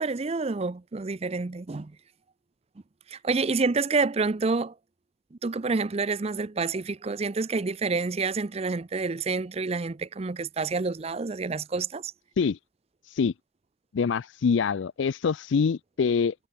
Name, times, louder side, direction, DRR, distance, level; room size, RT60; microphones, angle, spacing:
voice 1, 0.0-1.9 3.1-4.7 5.3-12.1, right 4 dB, 30° right, 0.5 m, -28 dB
voice 2, 13.9-16.3, left 5 dB, 75° left, 0.4 m, -25 dB
head